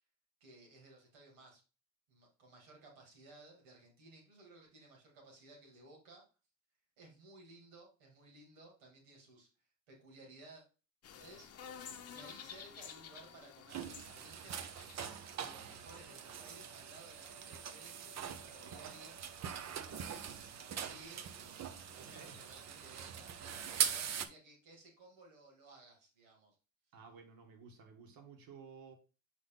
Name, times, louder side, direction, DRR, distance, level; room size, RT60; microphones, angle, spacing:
voice 1, 0.4-1.6 2.1-6.2 7.0-9.5 9.9-10.6 11.2-14.6 15.4-19.2 19.9-26.6, right 2 dB, 85° right, 2.6 m, -58 dB
sound 1, 11.0-16.0, left 8 dB, 40° left, 0.8 m, -52 dB
sound 2, 13.7-24.3, right 8 dB, 40° right, 0.7 m, -42 dB
voice 2, 22.0-22.4 26.9-28.9, right 5 dB, 60° right, 1.8 m, -54 dB
5.9 x 4.2 x 3.8 m
supercardioid pair, 85°, 39 cm